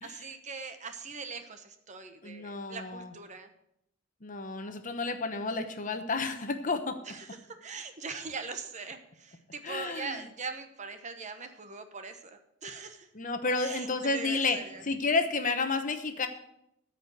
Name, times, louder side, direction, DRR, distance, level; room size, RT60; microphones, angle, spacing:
voice 1, 0.0-3.5 7.1-13.1 13.6-14.8, right 4 dB, 35° right, 8 dB, 1.0 m, -41 dB
voice 2, 2.2-3.1 4.2-7.0 9.6-10.2 13.1-16.3, left 3 dB, 40° left, 8 dB, 1.0 m, -31 dB
13.5 x 5.1 x 7.9 m, 0.78 s
head